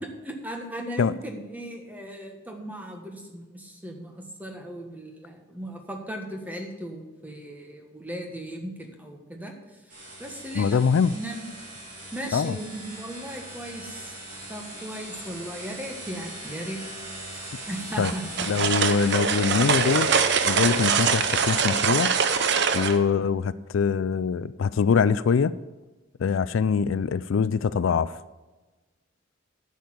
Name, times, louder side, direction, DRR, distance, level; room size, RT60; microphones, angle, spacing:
voice 1, 0.2-9.6 10.2-10.8 11.1-11.4 12.1-14.2 14.5-16.8 17.3-18.7, right 1 dB, 10° right, 2 dB, 1.4 m, -37 dB
sound 1, 9.9-21.6, right 1 dB, 40° right, 4.5 m, -38 dB
voice 2, 10.5-11.2 12.3-12.6 18.0-18.1 18.5-20.1 20.4-22.1 22.7-25.5 26.2-28.1, left 6 dB, 75° left, 16 dB, 0.4 m, -23 dB
sound 2, 18.0-23.0, right 6 dB, 60° right, 0.8 m, -23 dB
10.5 x 6.5 x 7.9 m, 1.2 s
head